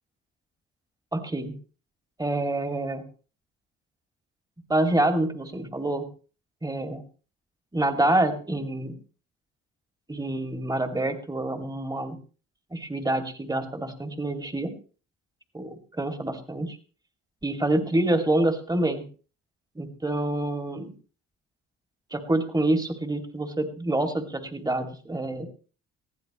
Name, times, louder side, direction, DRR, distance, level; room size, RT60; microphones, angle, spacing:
voice 1, 1.1-1.5 2.2-3.0 4.7-6.1 6.6-7.0 7.7-8.9 10.1-12.2 12.7-14.8 15.5-16.8 17.4-19.0 19.8-20.9 22.1-25.5, right 1 dB, 15° right, 5 dB, 2.5 m, -27 dB
20.5 x 15.0 x 3.1 m, 0.38 s
cardioid pair, 90°, 30 cm